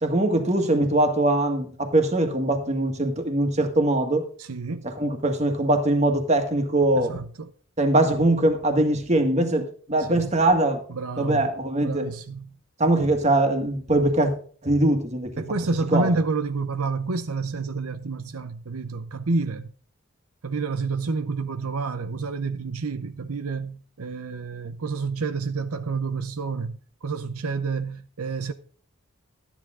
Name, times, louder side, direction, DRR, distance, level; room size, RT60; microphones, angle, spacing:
voice 1, 0.0-4.3 4.8-7.2 7.8-10.8 11.2-12.1 12.8-14.3 14.6-15.4 15.9-16.1, right 1 dB, 30° right, 1.8 m, -22 dB
voice 2, 4.4-4.9 7.0-7.5 10.0-10.3 10.9-11.4 11.8-12.5 15.4-19.7 20.4-28.5, right 4 dB, 85° right, 0.7 m, -29 dB
13.0 x 10.0 x 3.7 m
head